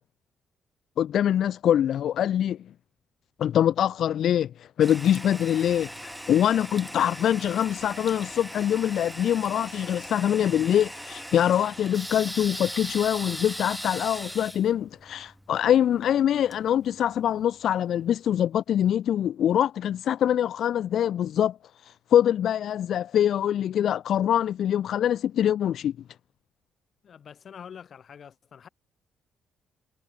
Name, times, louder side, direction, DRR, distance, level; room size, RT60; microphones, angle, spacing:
voice 1, 1.0-2.6 3.4-21.6 21.8-25.9, left 10 dB, 70° left, 1.0 m, -24 dB
Toilet flush, 4.8-17.4, equal, ahead, 3.9 m, -39 dB
voice 2, 27.0-28.7, left 7 dB, 55° left, 5.8 m, -45 dB
cardioid pair, 90°, 0 cm